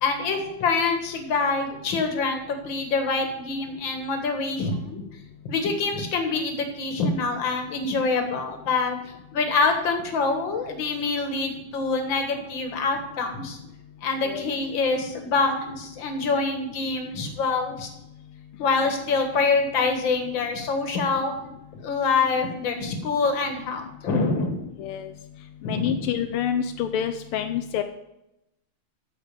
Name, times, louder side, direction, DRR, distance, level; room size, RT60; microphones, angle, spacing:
voice 1, 0.0-5.1 5.5-9.0 9.3-13.6 14.0-17.9 18.6-21.3 21.7-24.6 25.6-26.0, left 4 dB, 65° left, 5 dB, 2.3 m, -25 dB
voice 2, 24.8-25.1 25.6-27.8, left 9 dB, 90° left, 7 dB, 1.6 m, -27 dB
9.2 x 7.3 x 6.6 m, 0.86 s
omnidirectional pair, 2.4 m